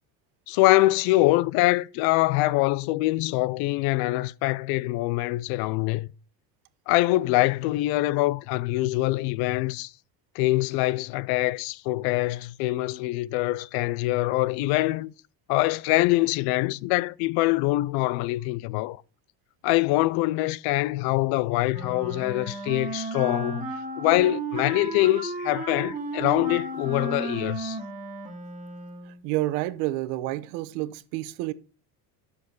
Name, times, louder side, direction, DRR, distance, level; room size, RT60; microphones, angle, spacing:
voice 1, 0.5-6.1 6.9-9.9 10.3-15.1 15.5-19.0 19.6-27.8, left 18 dB, 55° left, 0.5 m, -24 dB
Wind instrument woodwind instrument, 21.7-29.2, right 3 dB, 15° right, 2.1 m, -34 dB
voice 2, 29.1-31.5, right 16 dB, 75° right, 1.0 m, -29 dB
11.0 x 7.1 x 4.5 m
cardioid pair, 165°, 46 cm